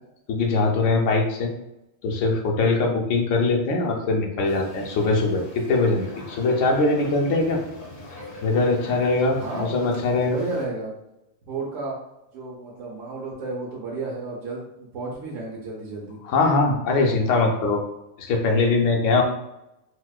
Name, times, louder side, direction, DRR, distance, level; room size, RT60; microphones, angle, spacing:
voice 1, 0.3-1.5 2.0-7.6 8.4-10.4 16.2-17.8 18.2-19.2, left 3 dB, 75° left, 1 dB, 1.0 m, -22 dB
sound 1, 4.4-10.6, left 1 dB, 40° left, 0.6 m, -42 dB
voice 2, 9.4-11.0 11.5-12.0 12.3-16.2, right 3 dB, 80° right, -5 dB, 1.1 m, -33 dB
4.2 x 2.1 x 2.3 m, 0.88 s
omnidirectional pair, 1.3 m